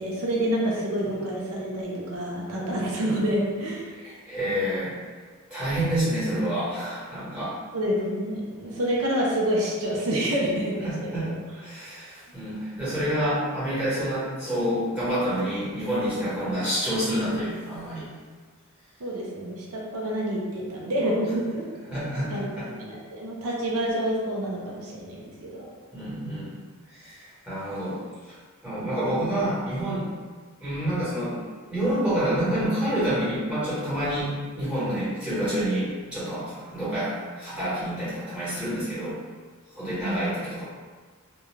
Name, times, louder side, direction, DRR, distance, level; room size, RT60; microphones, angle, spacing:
voice 1, 0.0-3.9 7.7-11.3 11.7-11.8 19.0-21.7 22.3-22.5 22.8-25.7 40.0-40.3, equal, 70° right, -3 dB, 0.5 m, -28 dB
voice 2, 4.0-4.9 5.5-7.6 10.8-11.3 11.5-18.1 21.9-22.7 25.9-26.5 26.9-28.0 28.6-30.1 30.6-31.4 31.7-39.2 39.7-40.6, right 1 dB, 5° right, -12 dB, 1.2 m, -28 dB
2.4 x 2.2 x 3.1 m, 1.5 s
head